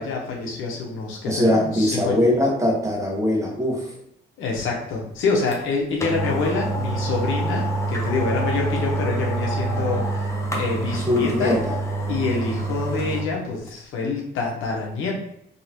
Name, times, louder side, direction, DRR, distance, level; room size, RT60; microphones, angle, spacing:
voice 1, 0.0-2.2 4.4-11.6 12.1-15.2, left 4 dB, 85° left, -1 dB, 1.1 m, -26 dB
voice 2, 1.3-3.8 11.0-11.7, left 1 dB, 15° right, -2 dB, 1.2 m, -21 dB
sound 1, 5.5-5.6 6.0-13.3 13.7-13.8, right 2 dB, 15° left, 0.9 m, -26 dB
4.0 x 3.0 x 2.9 m, 0.74 s
cardioid pair, 90°, 20 cm